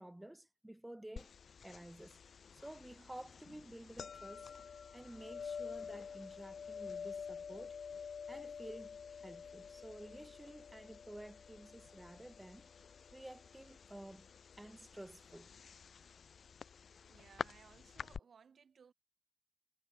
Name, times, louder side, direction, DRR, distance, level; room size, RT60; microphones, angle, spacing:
voice 1, 0.0-1.4 1.6-12.8 13.1-14.3 14.6-15.5, right 1 dB, 10° right, 0.9 m, -52 dB
sound 1, 1.2-18.2, left 6 dB, 80° left, 0.5 m, -49 dB
voice 2, 17.0-18.9, right 6 dB, 80° right, 3.0 m, -62 dB
wide cardioid pair, 120°, 0 cm